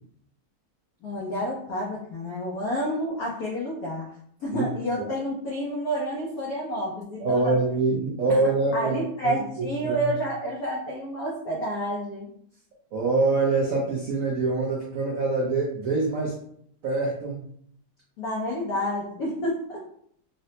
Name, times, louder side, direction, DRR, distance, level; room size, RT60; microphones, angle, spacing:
voice 1, 1.0-4.1 4.4-7.6 8.7-12.3 18.2-19.8, equal, 90° left, -3 dB, 0.8 m, -29 dB
voice 2, 7.2-9.4 9.8-10.1 12.9-16.4 16.8-17.4, right 3 dB, 85° right, -5 dB, 0.7 m, -25 dB
3.9 x 2.1 x 2.7 m, 0.65 s
omnidirectional pair, 2.3 m